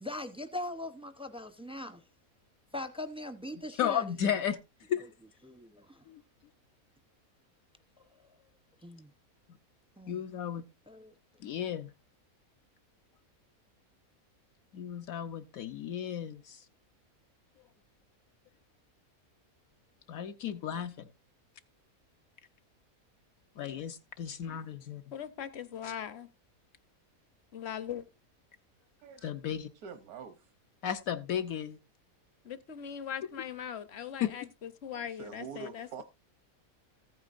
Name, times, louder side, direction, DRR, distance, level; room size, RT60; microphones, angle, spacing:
voice 1, 0.0-2.0 2.7-4.3 5.4-6.1 8.1-8.5 8.8-9.1 10.0-10.2 10.9-11.1, left 1 dB, 5° right, 0.4 m, -41 dB
voice 2, 3.8-4.6 4.9-5.1 6.1-6.2 10.1-10.6 11.4-11.9 14.7-16.6 20.1-21.1 23.6-25.0 25.8-25.9 29.2-29.7 30.8-31.8 34.2-34.3, left 9 dB, 75° left, 1.1 m, -34 dB
voice 3, 25.1-26.3 27.5-28.0 32.4-36.0, left 8 dB, 55° left, 0.9 m, -40 dB
voice 4, 29.8-30.5 34.9-36.0, right 6 dB, 85° right, 1.3 m, -45 dB
14.5 x 9.0 x 2.5 m
omnidirectional pair, 1.5 m